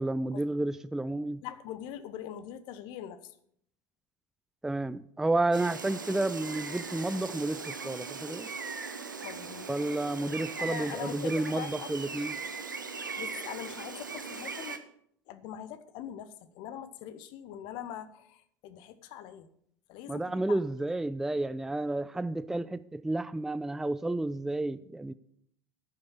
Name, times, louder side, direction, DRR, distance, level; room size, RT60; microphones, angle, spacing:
voice 1, 0.0-1.4 4.6-8.5 9.7-12.4 20.1-25.1, right 2 dB, 5° right, 15 dB, 0.4 m, -31 dB
voice 2, 1.4-3.3 9.2-9.7 10.6-11.9 13.2-14.8 15.3-19.5 19.9-20.6, left 10 dB, 50° left, 13 dB, 0.9 m, -42 dB
Gull seagull, 5.5-14.8, right 4 dB, 85° right, 0.8 m, -39 dB
10.5 x 6.4 x 7.0 m, 0.70 s
figure-of-eight pair, 75°, 10 cm